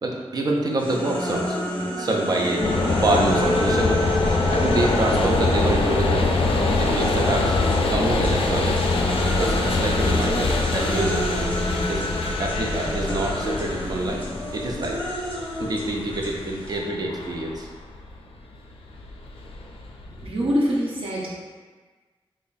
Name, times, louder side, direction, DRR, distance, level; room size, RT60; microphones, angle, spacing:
voice 1, 0.0-2.6 3.0-4.1 4.5-6.3 6.8-7.5 7.9-8.9 9.4-11.3 11.9-12.1 12.4-14.2 14.5-15.0 15.5-17.7, right 2 dB, 45° right, -1 dB, 0.5 m, -26 dB
sound 1, 0.8-7.9 8.2-16.8, left 1 dB, 20° left, 0.7 m, -29 dB
sound 2, 2.6-20.2, left 3 dB, 75° left, 0.4 m, -24 dB
voice 2, 20.2-21.4, equal, 70° right, -6 dB, 0.9 m, -24 dB
3.5 x 2.0 x 3.9 m, 1.4 s
wide cardioid pair, 160°, 10 cm